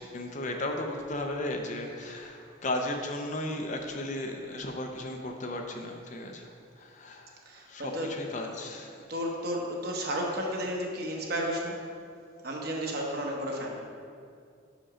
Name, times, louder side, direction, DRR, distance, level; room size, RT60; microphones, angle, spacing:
voice 1, 0.0-7.4 7.7-9.1, left 1 dB, 40° left, 3 dB, 0.5 m, -35 dB
voice 2, 7.5-8.1 9.1-11.8 12.4-13.8, equal, 50° right, -1 dB, 1.0 m, -32 dB
6.1 x 5.1 x 4.9 m, 2.3 s
head